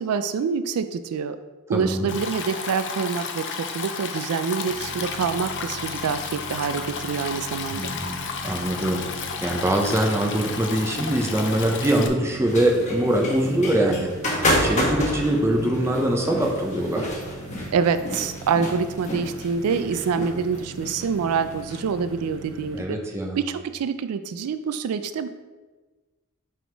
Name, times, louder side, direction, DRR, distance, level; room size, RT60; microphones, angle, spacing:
voice 1, 0.0-1.4 1.7-7.9 17.7-23.0 23.4-25.3, right 6 dB, 85° right, 11 dB, 0.3 m, -26 dB
voice 2, 1.7-2.1 7.7-9.0 9.4-14.1 14.6-17.1 22.7-23.4, right 1 dB, 10° right, 1 dB, 0.6 m, -23 dB
Stream, 2.1-12.1, left 5 dB, 55° left, 0.5 m, -32 dB
sound 1, 4.7-22.8, right 2 dB, 60° right, 0.7 m, -41 dB
sound 2, 12.5-21.8, left 1 dB, 35° left, 1.1 m, -29 dB
6.2 x 3.6 x 4.5 m, 1.3 s
head